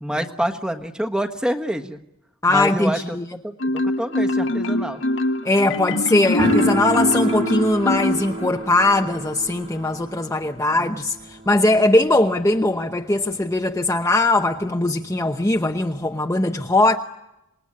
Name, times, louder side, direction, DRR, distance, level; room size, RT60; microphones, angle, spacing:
voice 1, 0.0-2.0 2.5-3.2 3.4-5.0 10.8-10.9, equal, 5° right, 1.4 m, -26 dB
voice 2, 2.4-3.2 5.4-17.0, left 2 dB, 15° left, 0.9 m, -20 dB
Marimba xylophone, 3.6-8.8, left 1 dB, 60° left, 1.3 m, -23 dB
sound 1, 6.4-13.1 13.4-13.5 13.7-13.8 14.6-14.7 14.9-16.1, right 1 dB, 30° right, 2.4 m, -30 dB
27.5 x 20.5 x 9.8 m
head